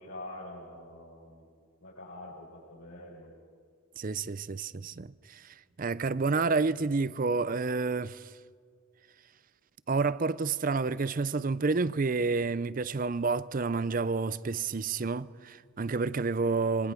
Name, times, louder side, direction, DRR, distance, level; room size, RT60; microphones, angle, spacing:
voice 1, 0.0-1.5 1.8-3.3, left 1 dB, 75° left, 6.6 m, -45 dB
voice 2, 4.0-8.3 9.9-16.9, right 4 dB, 40° right, 0.5 m, -29 dB
27.0 x 25.0 x 5.1 m
head